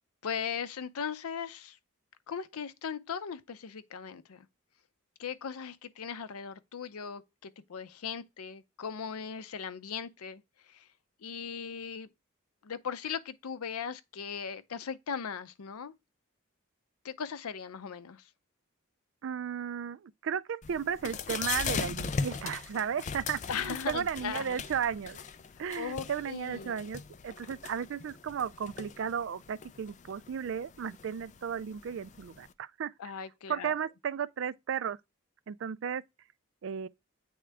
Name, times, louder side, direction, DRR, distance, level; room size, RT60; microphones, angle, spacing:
voice 1, 0.2-1.8 2.3-4.5 5.2-10.9 11.2-12.1 12.6-15.9 17.0-18.3 23.5-24.6 25.7-26.8 33.0-33.7, left 7 dB, 90° left, 0.5 m, -38 dB
voice 2, 19.2-25.2 25.6-32.9 33.5-35.0 35.5-36.0 36.6-36.9, right 7 dB, 60° right, 0.3 m, -34 dB
sound 1, 20.6-32.5, left 5 dB, 35° left, 0.3 m, -39 dB
8.6 x 3.6 x 3.4 m
head